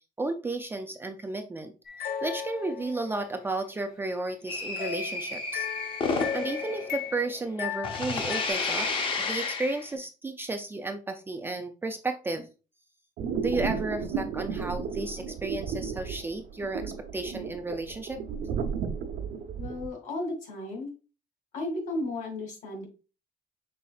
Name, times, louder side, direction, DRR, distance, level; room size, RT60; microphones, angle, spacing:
voice 1, 0.2-5.7 6.3-8.9 9.2-12.5 13.4-18.2, right 2 dB, 15° right, 5 dB, 0.3 m, -33 dB
sound 1, 1.8-3.3 4.8-8.5, left 8 dB, 75° left, 0.9 m, -36 dB
sound 2, 4.5-7.6 7.8-9.9, left 4 dB, 35° left, 0.6 m, -31 dB
sound 3, 13.2-19.9, right 6 dB, 90° right, 0.8 m, -33 dB
voice 2, 19.6-20.9 21.5-22.9, left 2 dB, 60° left, 2 dB, 2.0 m, -34 dB
5.6 x 4.1 x 2.3 m, 0.32 s
cardioid pair, 180°, 15 cm